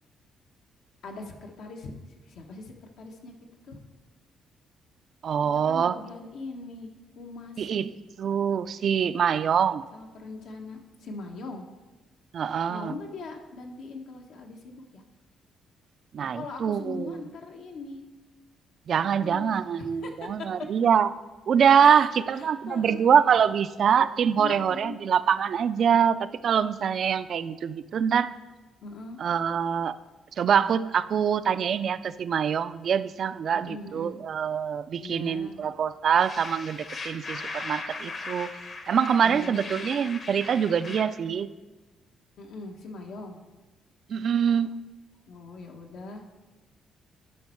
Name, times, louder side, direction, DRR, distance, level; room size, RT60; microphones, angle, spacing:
voice 1, 1.0-3.3 3.6-3.8 5.7-6.9 7.1-7.6 9.9-11.7 12.7-15.0 16.3-18.0 19.2-20.5 21.8-23.1 24.4-25.0 28.8-29.2 33.5-34.2 35.0-35.6 39.2-39.7 42.4-43.4 45.3-46.2, left 3 dB, 75° left, 2 dB, 1.2 m, -41 dB
voice 2, 5.2-6.0 7.6-9.8 12.3-12.9 16.1-17.2 18.9-21.1 21.5-28.3 29.2-29.9 30.4-38.5 38.9-41.5 44.1-44.7, right 7 dB, 55° right, 14 dB, 0.3 m, -24 dB
sound 1, 36.2-41.0, left 3 dB, 45° left, 1.0 m, -38 dB
10.5 x 5.3 x 4.5 m, 1.2 s
cardioid pair, 110°, 0 cm